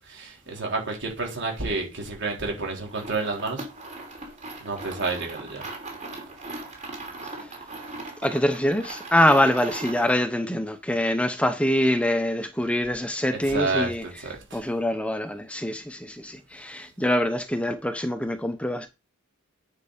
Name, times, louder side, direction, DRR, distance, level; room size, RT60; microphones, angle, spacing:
voice 1, 0.1-3.7 4.6-5.6 13.5-13.9 14.2-14.6, right 3 dB, 60° right, 4.2 m, -29 dB
sound 1, 2.9-10.2, right 2 dB, 35° right, 3.1 m, -39 dB
voice 2, 7.2-7.5 8.2-14.0 14.5-18.9, left 1 dB, 5° left, 0.7 m, -24 dB
9.8 x 5.4 x 5.0 m
head